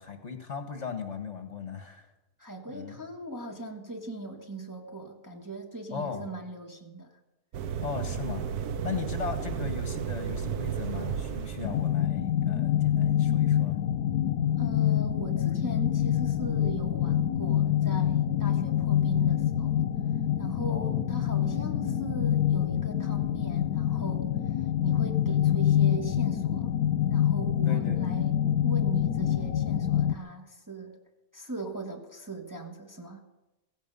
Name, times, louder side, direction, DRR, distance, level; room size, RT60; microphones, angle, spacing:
voice 1, 0.0-2.1 2.7-3.0 5.9-6.3 7.8-8.5 8.8-13.8 20.6-21.1 27.7-28.3, left 6 dB, 50° left, 6 dB, 1.8 m, -37 dB
voice 2, 2.4-7.1 14.5-19.8 20.4-26.7 27.1-28.3 28.6-31.0 31.3-33.2, right 2 dB, 15° right, 1 dB, 1.4 m, -40 dB
sound 1, 7.5-12.0, right 7 dB, 90° right, 1.3 m, -33 dB
sound 2, 11.6-30.2, left 10 dB, 85° left, 1.2 m, -26 dB
15.5 x 15.5 x 5.5 m, 1.0 s
omnidirectional pair, 1.6 m